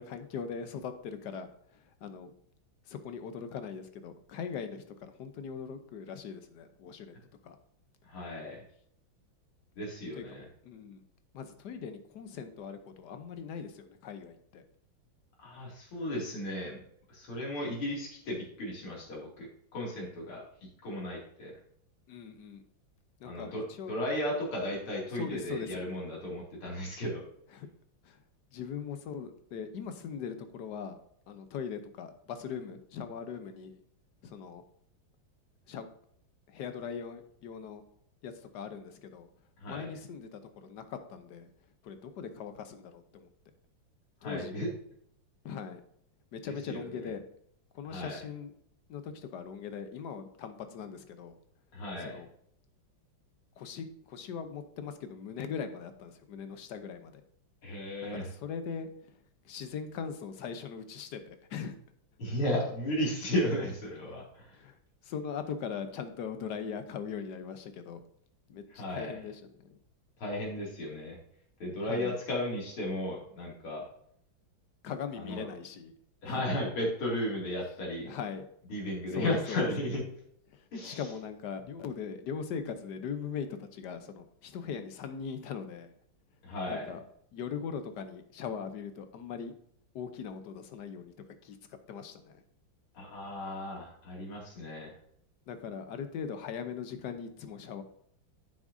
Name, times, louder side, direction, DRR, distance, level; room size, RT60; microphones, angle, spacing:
voice 1, 0.0-2.3 2.9-7.1 7.4-7.6 10.2-10.4 10.6-11.0 11.3-14.6 22.1-22.6 23.2-23.9 25.1-25.8 27.5-27.7 28.0-28.2 28.5-31.0 31.3-33.8 34.2-34.6 35.7-35.9 36.5-37.8 38.2-39.3 39.7-41.5 41.8-43.3 44.2-44.6 45.4-45.8 46.3-47.2 47.7-48.5 48.9-51.4 52.0-52.3 53.6-57.2 58.0-59.2 59.4-61.8 64.5-64.8 65.0-68.0 68.5-69.8 71.9-72.1 74.8-75.9 76.2-76.4 78.0-78.5 79.1-79.7 80.5-85.9 86.7-87.0 87.3-89.5 89.9-91.1 91.4-92.4 95.5-97.8, left 6 dB, 65° left, 9 dB, 1.2 m, -40 dB
voice 2, 8.1-8.6 9.8-10.5 15.4-16.8 17.1-19.5 19.7-20.4 20.8-21.5 23.2-23.6 23.9-27.2 39.6-39.9 44.2-44.7 46.4-46.8 47.9-48.2 51.7-52.2 57.6-58.3 62.2-64.5 68.7-69.2 70.2-71.2 71.6-73.9 75.2-75.5 76.2-78.1 78.7-80.0 80.7-81.0 86.4-86.9 93.0-94.9, left 1 dB, 85° left, -3 dB, 3.3 m, -34 dB
9.5 x 7.3 x 2.6 m, 0.68 s
omnidirectional pair, 2.3 m